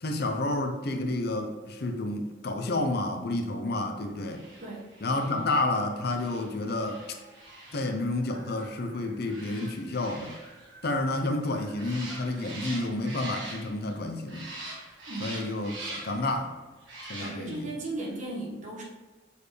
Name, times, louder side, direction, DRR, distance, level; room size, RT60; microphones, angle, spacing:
voice 1, 0.0-4.4 5.0-7.0 7.7-10.4 10.8-14.5 15.2-15.7 16.0-16.6 17.1-17.7, left 2 dB, 50° left, 5 dB, 0.6 m, -30 dB
sound 1, 4.2-14.0 14.3-16.3 16.8-17.7 18.0-18.1, right 2 dB, 60° right, 1.7 m, -44 dB
voice 2, 15.1-15.4 17.2-18.8, right 2 dB, 40° right, -3 dB, 1.4 m, -36 dB
6.8 x 4.5 x 3.2 m, 1.3 s
head